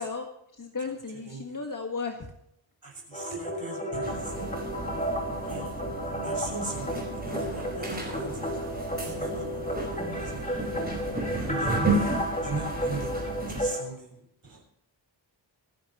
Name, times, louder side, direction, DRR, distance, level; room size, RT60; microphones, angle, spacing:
voice 1, 0.0-2.3, left 4 dB, 40° left, 2 dB, 1.6 m, -35 dB
voice 2, 1.3-1.6 2.8-4.3 5.4-5.7 6.2-8.6 9.0-10.7 11.4-11.9 12.4-13.1 13.5-14.6, right 3 dB, 45° right, 0 dB, 6.8 m, -39 dB
sound 1, 3.1-13.8, equal, 15° left, 3.0 m, -33 dB
sound 2, 4.0-13.7, right 2 dB, 20° right, 5.0 m, -33 dB
26.5 x 10.5 x 3.0 m, 0.76 s
wide cardioid pair, 140°, 48 cm